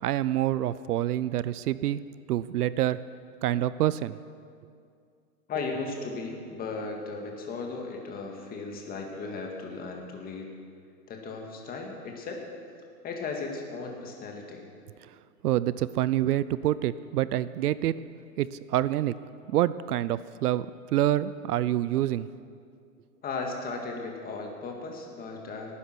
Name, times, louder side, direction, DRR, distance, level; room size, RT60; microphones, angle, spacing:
voice 1, 0.0-2.0 2.3-3.0 3.4-4.2 15.4-18.0 18.4-19.2 19.5-20.6 20.9-22.3, right 13 dB, 75° right, 17 dB, 0.6 m, -26 dB
voice 2, 5.5-10.5 11.1-12.4 13.0-14.6 23.2-25.7, left 3 dB, 20° left, 1 dB, 1.9 m, -36 dB
18.0 x 9.9 x 6.1 m, 2.3 s
hypercardioid pair, 140°, 47 cm